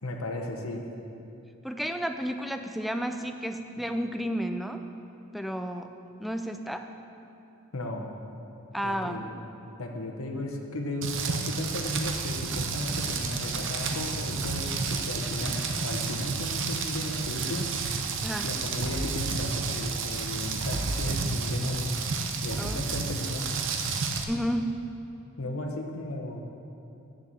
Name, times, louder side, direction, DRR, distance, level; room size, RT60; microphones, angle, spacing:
voice 1, 0.0-0.8 7.7-8.1 8.8-9.3 9.8-17.7 18.4-21.9 22.4-23.5 25.4-26.4, left 1 dB, 75° left, 2 dB, 1.0 m, -35 dB
voice 2, 1.6-4.8 5.3-5.9 6.2-6.9 8.7-9.2 18.2-18.5 22.6-22.8 24.3-24.8, equal, ahead, 6 dB, 0.4 m, -31 dB
Rain, 11.0-24.2, right 4 dB, 60° right, 0.7 m, -31 dB
7.9 x 6.8 x 7.6 m, 2.8 s
head